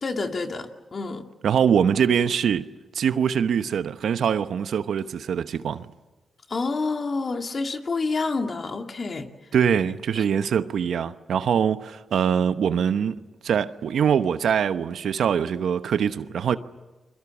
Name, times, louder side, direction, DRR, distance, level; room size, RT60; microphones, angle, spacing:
voice 1, 0.0-1.3 6.5-9.3 10.1-10.3, left 3 dB, 50° left, 2.4 m, -28 dB
voice 2, 1.4-2.7 2.9-5.9 9.5-16.6, right 7 dB, 80° right, 1.0 m, -23 dB
29.5 x 23.0 x 7.2 m
cardioid pair, 60°, 0 cm